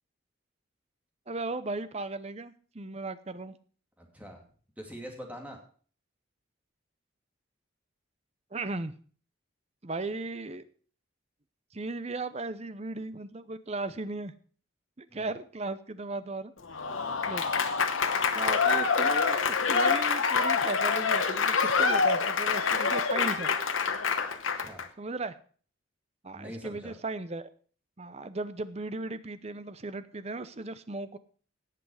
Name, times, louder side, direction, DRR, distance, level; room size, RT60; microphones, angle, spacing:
voice 1, 1.3-3.6 8.5-8.9 9.8-10.7 11.7-14.3 15.0-16.5 17.3-17.4 18.3-23.5 25.0-25.3 26.2-27.5 28.0-31.2, right 3 dB, 30° right, 13 dB, 0.7 m, -36 dB
voice 2, 4.0-4.4 4.8-5.6 15.1-15.3 24.6-24.9 26.3-26.9, equal, 5° right, 1 dB, 2.5 m, -43 dB
Applause / Crowd, 16.7-24.9, left 5 dB, 80° left, 1.0 m, -26 dB
17.5 x 6.0 x 4.9 m, 0.43 s
head